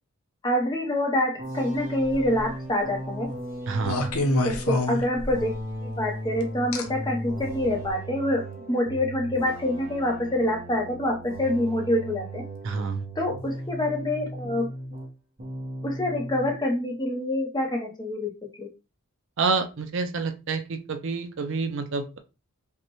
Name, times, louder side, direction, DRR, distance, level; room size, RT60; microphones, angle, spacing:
voice 1, 0.4-3.3 4.4-12.4 13.2-14.7 15.8-18.3 18.6-18.7, left 1 dB, 20° left, 2 dB, 0.7 m, -26 dB
sound 1, 1.4-15.1 15.4-16.6, right 1 dB, 40° right, 0.9 m, -37 dB
sound 2, 2.0-2.5 3.8-5.6 6.7-6.8 7.7-7.9, left 1 dB, 75° left, 0.8 m, -26 dB
voice 2, 3.7-4.1 12.6-13.1 19.4-22.2, right 4 dB, 55° right, 7 dB, 0.5 m, -28 dB
5.3 x 2.2 x 3.0 m, 0.29 s
head